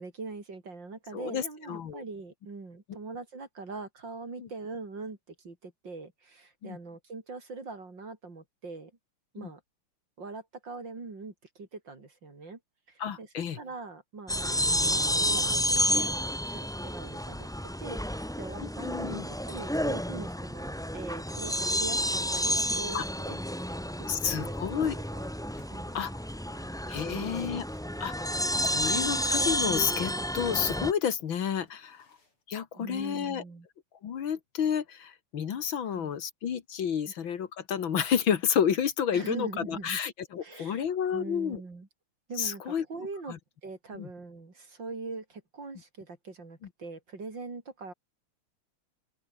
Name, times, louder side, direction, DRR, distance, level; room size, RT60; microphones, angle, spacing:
voice 1, 0.0-8.9 9.3-9.6 10.2-12.6 12.9-13.3 13.6-15.4 15.7-17.5 17.8-24.1 24.4-24.5 24.9-25.2 25.7-26.0 26.6-26.7 27.0-27.6 28.6-29.0 32.7-33.7 35.8-36.1 37.0-37.1 39.1-40.0 40.4-40.8 41.1-41.9 42.3-43.3 43.6-47.9, right 3 dB, 55° right, 4.8 m, -42 dB
voice 2, 1.1-2.0 4.4-4.5 6.6-6.8 9.4-9.5 13.0-13.6 18.6-19.3 22.9-23.0 24.1-25.0 25.9-26.1 26.5-27.6 28.0-32.1 32.5-33.4 34.0-41.6 42.4-42.9 43.3-43.4 43.9-44.1, left 8 dB, 65° left, 2.2 m, -31 dB
sound 1, 14.3-30.9, equal, ahead, 1.4 m, -30 dB
sound 2, 23.2-28.1 28.3-32.4, left 2 dB, 85° left, 8.5 m, -54 dB
open air
omnidirectional pair, 2.4 m